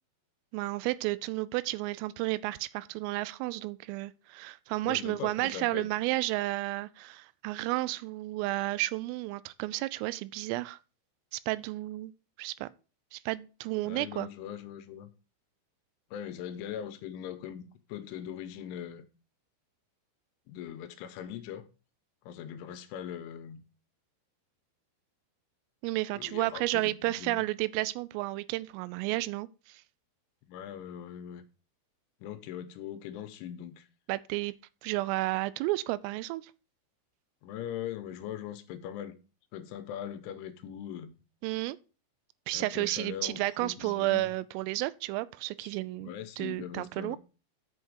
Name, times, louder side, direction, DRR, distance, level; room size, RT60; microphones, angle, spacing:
voice 1, 0.5-10.8 11.3-12.1 12.4-12.7 13.1-14.3 25.8-29.8 34.1-34.5 34.8-36.4 41.4-41.8 42.5-46.1 46.4-47.2, right 19 dB, 90° right, 3.2 m, -32 dB
voice 2, 4.8-5.9 13.9-15.1 16.1-19.0 20.5-21.6 22.3-23.6 26.1-27.4 30.5-31.4 32.2-33.9 37.4-39.2 39.5-41.2 42.5-44.3 45.6-45.7 46.0-47.2, left 10 dB, 85° left, 3.2 m, -41 dB
7.8 x 5.8 x 6.4 m
omnidirectional pair, 5.8 m